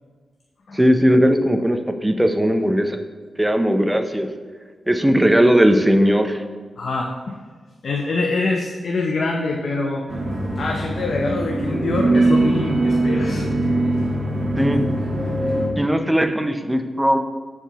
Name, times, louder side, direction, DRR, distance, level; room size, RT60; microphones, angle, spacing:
voice 1, 0.7-3.0 3.4-4.3 4.9-6.4 14.6-14.8 15.8-17.2, equal, 10° right, 6 dB, 0.6 m, -18 dB
voice 2, 6.8-7.4 7.8-10.0 10.6-13.5, left 3 dB, 55° left, 1 dB, 0.6 m, -24 dB
sound 1, 10.1-15.7, right 2 dB, 25° right, 1.5 m, -21 dB
13.5 x 4.6 x 3.0 m, 1.5 s
wide cardioid pair, 140°, 0 cm